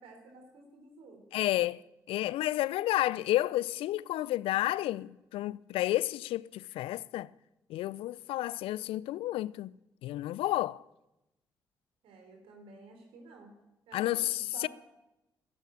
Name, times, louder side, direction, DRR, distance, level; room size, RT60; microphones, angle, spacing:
voice 1, 0.0-1.4 12.0-13.5 13.9-14.7, right 3 dB, 65° right, 3.5 m, -52 dB
voice 2, 1.3-1.8 2.1-7.3 7.7-9.7 10.0-10.8 13.9-14.7, left 15 dB, 65° left, 0.4 m, -31 dB
13.0 x 11.0 x 8.9 m
hypercardioid pair, 40°, 10 cm